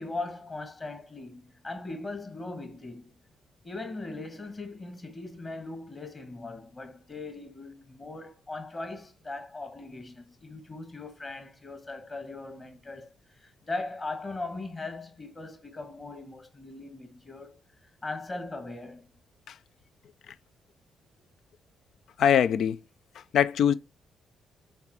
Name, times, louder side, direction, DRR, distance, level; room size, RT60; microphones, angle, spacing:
voice 1, 0.0-3.1 3.6-17.6 18.0-19.0, left 2 dB, 35° left, 1.9 m, -39 dB
voice 2, 22.2-22.8 23.3-23.7, left 8 dB, 60° left, 0.4 m, -22 dB
5.8 x 4.0 x 4.7 m
figure-of-eight pair, 40°, 0 cm